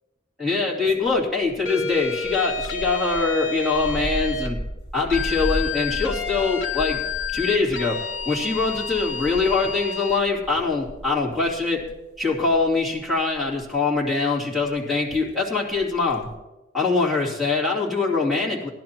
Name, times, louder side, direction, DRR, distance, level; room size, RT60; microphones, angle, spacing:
voice 1, 0.4-4.6 4.9-7.0 7.3-8.0 8.2-11.8 12.2-16.3 16.7-18.7, left 4 dB, ahead, -8 dB, 2.9 m, -23 dB
sound 1, 0.9-14.0 14.7-14.8 15.1-15.3 15.7-16.4, equal, 60° left, 2.0 m, -36 dB
sound 2, 1.7-4.5 5.1-10.2, left 4 dB, 80° left, 1.0 m, -30 dB
18.0 x 11.5 x 3.0 m, 1.1 s
head